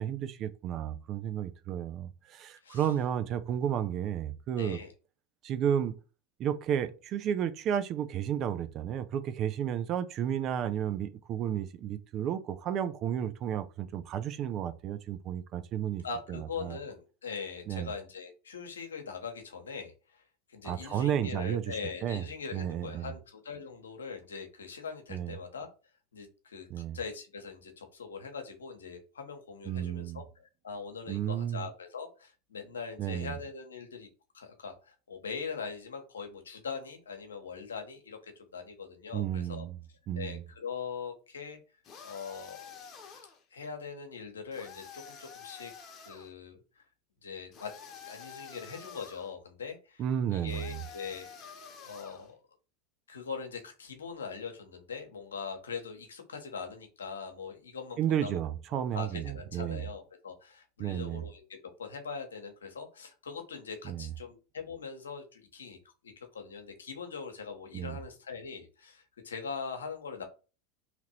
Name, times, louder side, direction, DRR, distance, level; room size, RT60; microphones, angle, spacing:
voice 1, 0.0-4.8 5.4-6.0 6.4-16.0 16.3-16.8 17.7-17.9 20.6-22.2 22.5-23.1 25.1-25.3 26.7-27.0 29.7-30.2 31.1-31.6 33.0-33.3 39.1-39.8 40.1-40.4 50.0-50.8 58.0-59.8 60.8-61.2 63.8-64.1 67.7-68.0, right 9 dB, 45° right, 0.4 m, -32 dB
voice 2, 4.5-4.9 16.0-20.2 20.5-25.7 26.1-26.7 26.9-34.1 34.3-41.6 42.0-42.8 43.5-45.7 46.0-46.8 47.2-47.7 48.1-50.0 50.3-51.3 51.8-52.4 53.1-58.4 58.7-65.8 66.0-70.2, left 5 dB, 90° left, 0.8 m, -42 dB
sound 1, 41.8-43.4 44.5-46.3 47.5-49.3 50.5-52.3, left 7 dB, 40° left, 0.9 m, -49 dB
2.9 x 2.6 x 4.2 m
hypercardioid pair, 90°, 0 cm